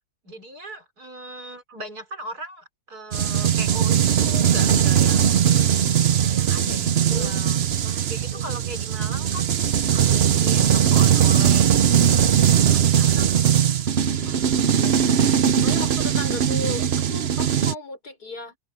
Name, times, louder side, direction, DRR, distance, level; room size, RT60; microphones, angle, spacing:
voice 1, 0.2-5.5 6.2-9.5 9.9-13.6 14.0-14.6, equal, 75° right, 5.7 m, -38 dB
sound 1, 3.1-17.7, right 9 dB, 50° right, 0.8 m, -20 dB
voice 2, 7.1-8.2 12.2-12.6 14.7-15.3 15.6-18.6, left 3 dB, 80° left, 5.5 m, -36 dB
open air
omnidirectional pair, 1.7 m